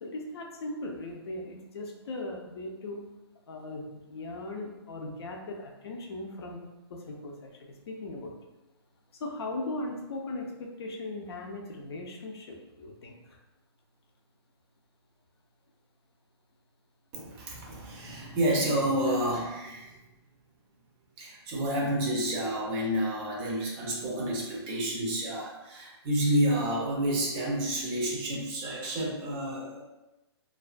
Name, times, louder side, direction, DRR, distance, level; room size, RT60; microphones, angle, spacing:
voice 1, 0.0-3.1 3.5-6.6 6.9-8.3 9.1-13.4, left 2 dB, 65° left, 2 dB, 0.5 m, -38 dB
voice 2, 17.1-20.0 21.2-29.8, right 1 dB, 25° right, -3 dB, 0.5 m, -29 dB
2.3 x 2.2 x 2.4 m, 1.0 s
hypercardioid pair, 150°, 14 cm